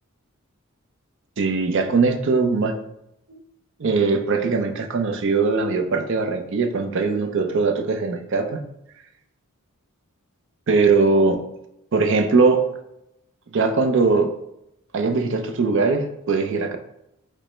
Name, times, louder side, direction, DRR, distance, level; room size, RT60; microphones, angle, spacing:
voice 1, 1.4-2.8 3.3-3.4 3.8-8.6 10.7-11.4 11.9-12.7 13.5-14.3 14.9-16.8, right 4 dB, 60° right, 5 dB, 0.5 m, -20 dB
5.0 x 2.1 x 4.2 m, 0.81 s
head